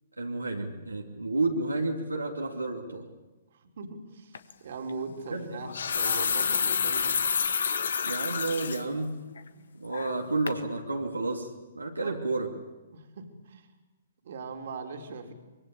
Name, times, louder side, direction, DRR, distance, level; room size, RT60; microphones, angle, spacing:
voice 1, 0.2-3.1 5.3-5.7 8.0-9.1 9.7-11.5 11.7-12.5, right 2 dB, 90° right, 1 dB, 2.7 m, -31 dB
voice 2, 3.5-7.3 12.0-12.2 12.9-13.7 14.2-15.3, right 4 dB, 55° right, 5 dB, 3.5 m, -40 dB
sound 1, 4.3-4.5 5.5-8.8 9.3-9.4 9.9-10.2 10.5-10.6, left 6 dB, 65° left, 1.6 m, -28 dB
25.0 x 22.5 x 8.5 m, 1.2 s
figure-of-eight pair, 120°, 0 cm